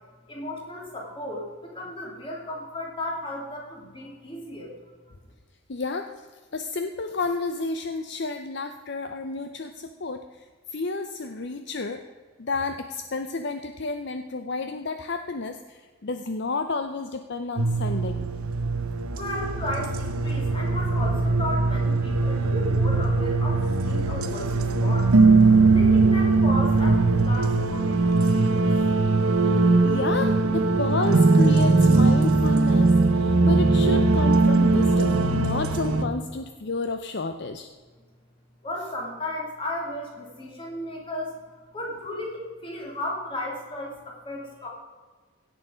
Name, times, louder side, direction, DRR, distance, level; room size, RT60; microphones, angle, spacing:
voice 1, 0.3-4.7 5.1-5.2 19.1-25.1 25.7-28.7 38.6-44.7, left 1 dB, 25° left, -2 dB, 2.8 m, -35 dB
voice 2, 5.7-6.1 6.5-10.4 10.7-12.0 12.4-18.3 29.4-29.6 29.8-37.7, left 3 dB, 50° left, 7 dB, 0.6 m, -31 dB
sound 1, 17.6-36.1, right 3 dB, 85° right, 0.8 m, -20 dB
16.5 x 6.9 x 5.0 m, 1.5 s
head